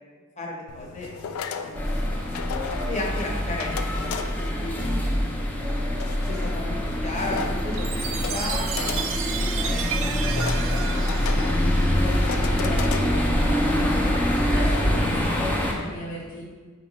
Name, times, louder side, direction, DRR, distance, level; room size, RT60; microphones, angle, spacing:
voice 1, 0.4-1.3 1.6-2.2 2.7-4.1 4.4-5.9 6.3-10.2 10.5-11.0 11.3-12.2 12.5-13.4, left 2 dB, 35° left, -1 dB, 0.8 m, -35 dB
sound 1, 0.7-15.7, left 6 dB, 70° left, 0.3 m, -37 dB
sound 2, 1.8-15.7, equal, 10° left, 0.5 m, -25 dB
Chime, 7.8-12.3, right 7 dB, 65° right, 0.4 m, -33 dB
voice 2, 14.5-16.4, equal, 90° left, -7 dB, 1.0 m, -35 dB
4.4 x 2.9 x 3.9 m, 1.5 s
head